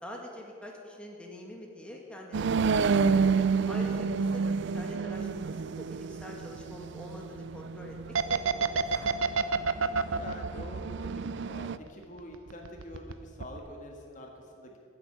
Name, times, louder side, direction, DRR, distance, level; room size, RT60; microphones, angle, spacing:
voice 1, 0.0-3.0 3.7-4.1 4.3-8.0 8.3-8.8, left 1 dB, 5° left, -1 dB, 2.0 m, -45 dB
sound 1, 2.3-11.8, right 5 dB, 60° right, 0.4 m, -30 dB
voice 2, 3.5-4.2 10.1-14.8, left 1 dB, 40° left, 1 dB, 1.6 m, -46 dB
sound 2, 8.1-11.9 12.2-13.1 13.4-13.6, right 5 dB, 85° right, 0.7 m, -28 dB
16.0 x 8.1 x 9.6 m, 2.4 s
head